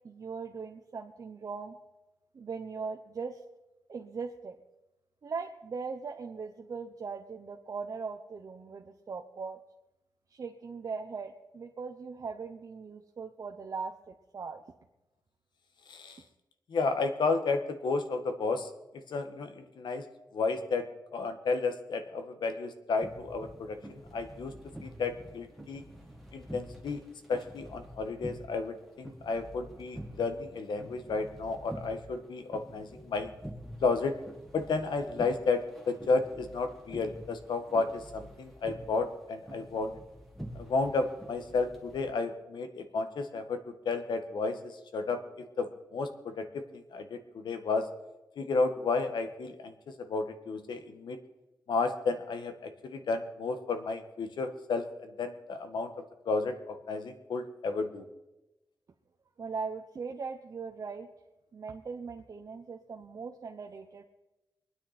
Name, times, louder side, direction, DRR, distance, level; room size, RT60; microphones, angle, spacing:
voice 1, 0.0-1.8 2.3-3.4 3.9-4.6 5.2-9.6 10.3-14.6 59.4-61.1 61.5-64.0, right 5 dB, 50° right, 2 dB, 0.9 m, -39 dB
voice 2, 15.9-16.2 16.7-18.7 19.1-20.0 20.3-20.8 21.1-24.5 24.8-25.8 26.3-27.0 27.3-33.3 33.8-34.1 34.5-39.9 40.5-43.6 43.8-45.2 45.6-46.6 46.9-47.9 48.4-49.7 50.0-51.2 51.7-55.9 56.2-58.0, left 3 dB, 90° left, 7 dB, 1.5 m, -32 dB
sound 1, 23.0-42.0, equal, 5° left, 2.2 m, -47 dB
24.0 x 9.8 x 4.3 m, 1.0 s
wide cardioid pair, 150°, 7 cm